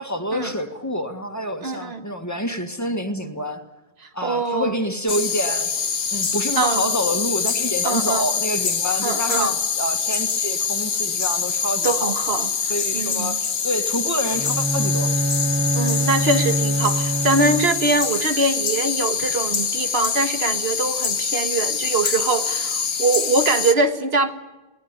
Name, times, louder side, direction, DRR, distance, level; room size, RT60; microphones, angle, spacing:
voice 1, 0.0-3.7 4.1-5.7 6.1-12.2 12.7-15.2, equal, 15° left, 6 dB, 2.0 m, -27 dB
voice 2, 1.6-2.0 4.2-4.8 6.6-6.9 7.8-8.3 9.0-9.5 11.8-12.5 12.9-13.4 15.7-24.3, right 3 dB, 75° right, 8 dB, 1.9 m, -23 dB
sound 1, 5.1-23.7, left 6 dB, 75° left, 1.3 m, -25 dB
Bowed string instrument, 14.3-18.1, right 1 dB, 10° right, 0.7 m, -24 dB
22.5 x 19.0 x 9.8 m, 1.1 s
omnidirectional pair, 1.0 m